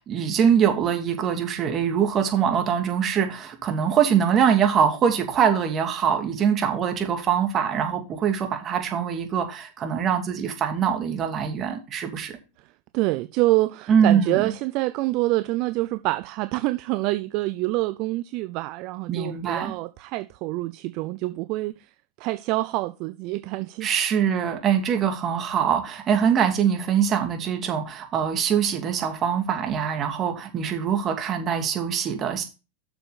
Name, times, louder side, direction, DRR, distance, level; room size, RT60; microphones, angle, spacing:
voice 1, 0.0-12.4 13.9-14.4 19.1-19.8 23.8-32.4, right 8 dB, 35° right, 2.6 m, -23 dB
voice 2, 12.9-21.9 22.2-23.9, right 19 dB, 50° right, 0.5 m, -26 dB
7.8 x 6.9 x 4.1 m
hypercardioid pair, 105°, 0 cm